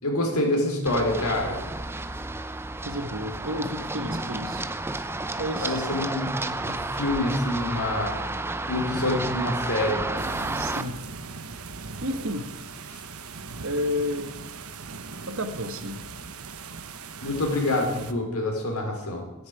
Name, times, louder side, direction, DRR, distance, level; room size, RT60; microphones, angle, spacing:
voice 1, 0.0-1.6 5.6-8.1 8.7-10.0 12.9-13.0 17.2-19.2, left 1 dB, 80° left, 2 dB, 4.3 m, -26 dB
Run, 0.9-10.8, right 2 dB, 10° right, 0.6 m, -31 dB
voice 2, 2.8-4.7 5.4-5.8 10.5-11.0 12.0-12.5 13.6-14.3 15.3-16.0, left 1 dB, 65° right, 8 dB, 1.6 m, -31 dB
sound 1, 10.1-18.1, right 4 dB, 80° right, 1.2 m, -39 dB
13.0 x 10.5 x 9.1 m, 1.1 s
head